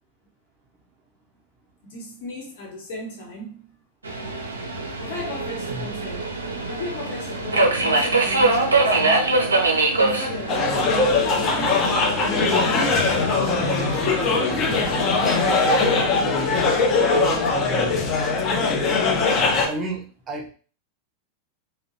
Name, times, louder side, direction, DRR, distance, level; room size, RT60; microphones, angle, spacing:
voice 1, 1.8-3.8 5.0-6.3 6.7-9.4 9.9-13.0 14.2-15.4, equal, 55° left, 0.9 m, -36 dB
Subway metro underground, 4.0-15.6, right 2 dB, 75° right, 0.4 m, -24 dB
sound 1, 10.5-19.7, left 3 dB, 30° left, 0.5 m, -21 dB
voice 2, 17.1-18.0 19.6-20.5, right 2 dB, 25° right, 0.6 m, -32 dB
2.6 x 2.0 x 2.6 m
figure-of-eight pair, 90°, 0 cm